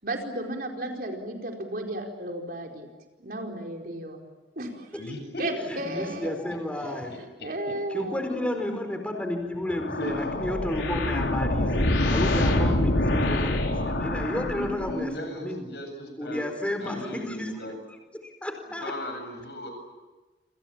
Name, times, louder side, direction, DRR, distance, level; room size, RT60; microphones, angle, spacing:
voice 1, 0.0-2.9 3.2-4.3 4.6-5.1 5.4-6.3 7.4-8.5, right 1 dB, 55° right, 2 dB, 4.7 m, -34 dB
voice 2, 5.0-6.0 9.7-10.7 14.6-16.4 16.8-17.8 18.8-19.7, left 1 dB, 65° left, 5 dB, 7.6 m, -37 dB
voice 3, 5.7-7.1 7.9-15.7 16.2-18.0 18.2-18.9, left 1 dB, 5° left, 4 dB, 4.4 m, -32 dB
sound 1, 9.7-15.1, left 1 dB, 90° left, 4.7 m, -26 dB
28.0 x 27.5 x 7.4 m, 1.2 s
head